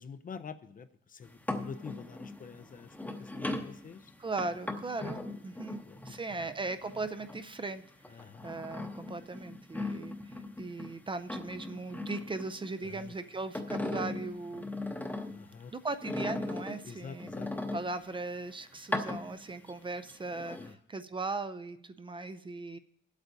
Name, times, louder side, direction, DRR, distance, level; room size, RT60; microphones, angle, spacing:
voice 1, 0.0-4.1 5.9-6.5 8.1-8.5 12.8-13.1 15.3-15.7 16.8-17.6 20.6-20.8, left 6 dB, 40° left, 10 dB, 0.5 m, -47 dB
sound 1, 1.2-7.7 8.0-10.9 11.2-13.0 13.4-15.5 16.0-18.2 18.8-19.7 20.1-20.7, left 2 dB, 10° left, 0.8 m, -38 dB
voice 2, 4.2-5.8 6.1-7.8 8.4-14.7 15.7-17.3 17.7-22.8, right 3 dB, 25° right, 11 dB, 0.4 m, -38 dB
20.5 x 8.1 x 2.7 m, 0.72 s
cardioid pair, 110°, 21 cm